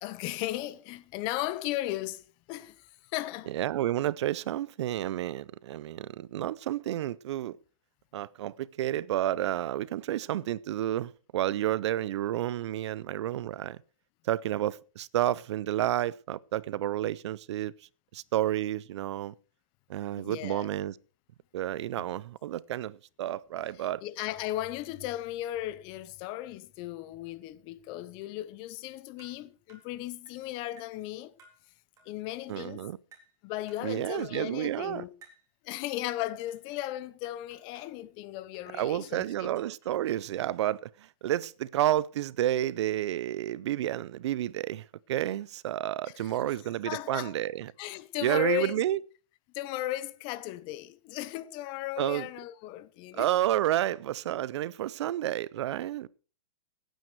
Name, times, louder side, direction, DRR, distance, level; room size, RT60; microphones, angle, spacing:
voice 1, 0.0-3.5 20.2-20.7 23.8-31.3 32.1-32.8 33.4-35.1 35.6-39.5 46.0-46.5 46.8-47.3 47.8-48.8 49.5-53.3, left 15 dB, 30° left, 0.8 m, -36 dB
voice 2, 3.5-7.6 8.1-13.8 14.2-17.7 18.1-19.3 19.9-20.9 21.5-24.0 32.5-33.0 33.8-35.0 38.7-47.7 48.2-49.0 52.0-52.3 53.1-56.1, right 13 dB, 55° right, 0.6 m, -30 dB
sound 1, 29.2-29.4 29.7-29.9 30.3-30.4 30.8-31.0 31.4-31.6 32.0-32.1 32.6-32.8 33.1-33.4 33.7-33.9 34.2-34.4 34.7-34.9 35.2-35.5 36.2-36.9 37.2-37.9 38.5-39.2 39.6-40.3, right 4 dB, 20° right, 4.0 m, -59 dB
17.0 x 9.1 x 4.6 m
hypercardioid pair, 150°, 17 cm